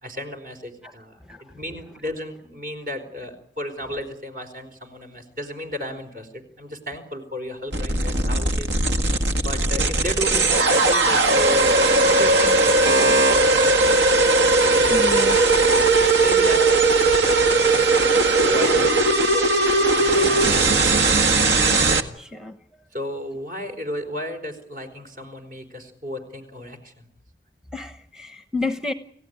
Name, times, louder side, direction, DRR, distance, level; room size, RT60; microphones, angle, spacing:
voice 1, 0.0-8.7 9.4-15.8 16.1-17.9 18.5-18.9 19.3-19.5 19.9-21.5 22.9-27.1, equal, 50° right, 6 dB, 4.6 m, -34 dB
sound 1, 7.7-22.0, right 3 dB, 80° right, 1.9 m, -18 dB
voice 2, 14.9-15.4 22.2-22.6 27.7-28.9, left 2 dB, 5° right, 8 dB, 0.9 m, -30 dB
30.0 x 16.0 x 9.5 m, 0.73 s
head